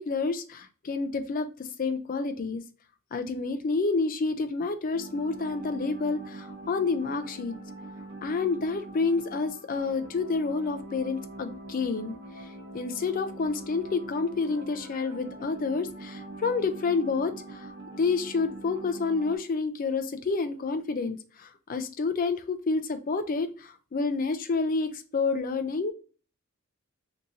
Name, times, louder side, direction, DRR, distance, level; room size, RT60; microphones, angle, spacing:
voice 1, 0.0-2.6 3.1-7.5 8.2-17.7 18.0-25.9, left 4 dB, 40° left, 9 dB, 0.4 m, -29 dB
sound 1, 4.9-19.4, right 2 dB, 50° right, 0.8 m, -43 dB
2.8 x 2.5 x 3.8 m, 0.37 s
head